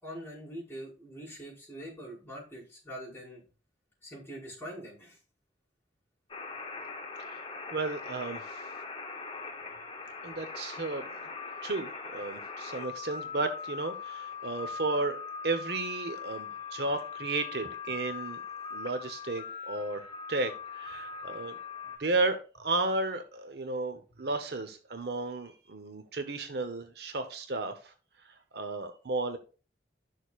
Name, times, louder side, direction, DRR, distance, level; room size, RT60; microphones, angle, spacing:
voice 1, 0.0-3.4 4.0-5.2 24.1-24.2, equal, 15° left, -6 dB, 5.0 m, -44 dB
sound 1, 6.3-22.0, left 5 dB, 30° left, 1.0 m, -41 dB
voice 2, 7.7-8.6 10.2-11.1 11.6-18.4 18.7-20.0 20.3-21.5 22.0-27.8 28.5-29.4, right 3 dB, 65° right, 8 dB, 0.9 m, -33 dB
12.0 x 6.5 x 2.4 m, 0.35 s
head